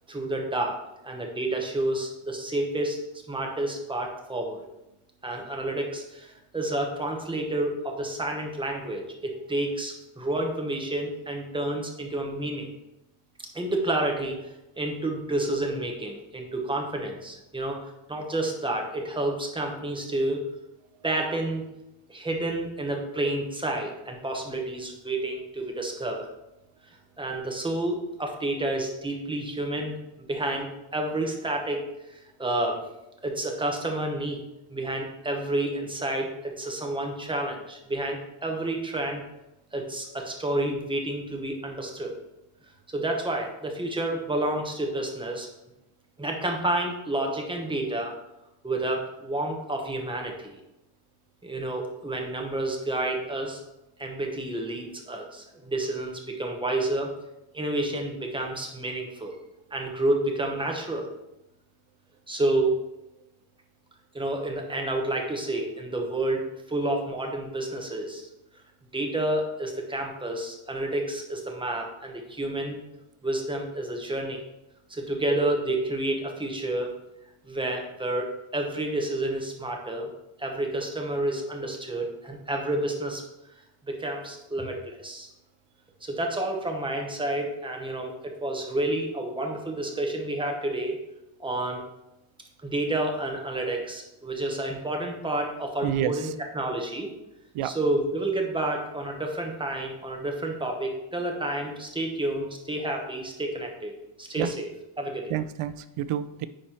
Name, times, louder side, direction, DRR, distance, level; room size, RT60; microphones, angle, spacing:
voice 1, 0.1-0.8 1.0-3.0 3.3-4.6 5.2-12.7 13.5-14.4 14.8-17.8 18.1-20.4 21.0-21.6 22.1-26.3 26.9-31.8 32.1-32.8 33.2-34.4 34.7-39.2 39.7-42.2 42.9-45.5 46.2-48.1 48.6-50.6 51.4-53.6 54.0-57.1 57.5-59.4 59.7-61.1 62.3-62.7 64.1-68.3 68.9-72.8 73.2-74.4 74.9-76.9 77.4-80.1 80.4-83.2 83.9-85.3 86.0-91.0 91.4-91.8 92.6-97.1 97.6-104.7 105.0-105.3, right 1 dB, 10° right, 1 dB, 1.0 m, -30 dB
voice 2, 95.8-96.3 97.5-97.8 104.4-104.5 105.3-106.5, right 10 dB, 90° right, 13 dB, 0.6 m, -29 dB
9.8 x 4.3 x 4.4 m, 0.92 s
wide cardioid pair, 175°, 49 cm